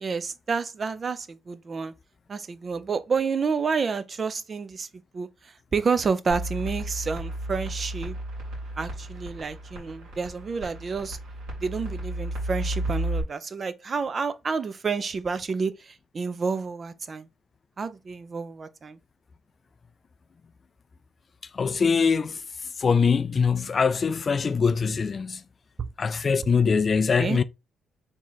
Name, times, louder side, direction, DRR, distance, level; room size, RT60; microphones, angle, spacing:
voice 1, 0.0-1.9 2.3-4.9 5.1-8.1 8.8-11.2 11.6-17.3 17.8-19.0 25.8-25.9 27.2-27.4, right 5 dB, 40° right, 0.5 m, -29 dB
sound 1, 6.3-13.2, right 1 dB, 85° right, 2.4 m, -33 dB
voice 2, 21.5-22.4 22.8-25.4 26.0-27.4, left 5 dB, 40° left, 0.3 m, -23 dB
3.7 x 3.1 x 4.0 m
cardioid pair, 90°, 0 cm